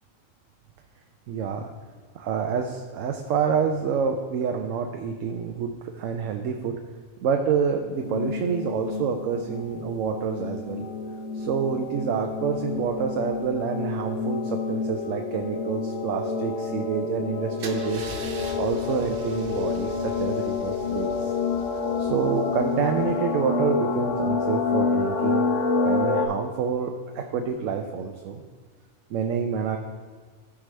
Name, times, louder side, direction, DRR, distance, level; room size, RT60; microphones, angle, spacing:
voice 1, 1.3-1.7 2.1-6.8 7.2-10.9 11.3-18.0 18.5-21.3 22.0-25.5 25.8-28.4 29.1-29.8, right 6 dB, 85° right, 4 dB, 1.0 m, -28 dB
sound 1, 7.9-26.3, left 4 dB, 75° left, 1.1 m, -28 dB
Car / Engine starting / Idling, 17.6-23.4, right 3 dB, 55° right, 0.8 m, -42 dB
13.5 x 4.8 x 3.2 m, 1.5 s
omnidirectional pair, 1.3 m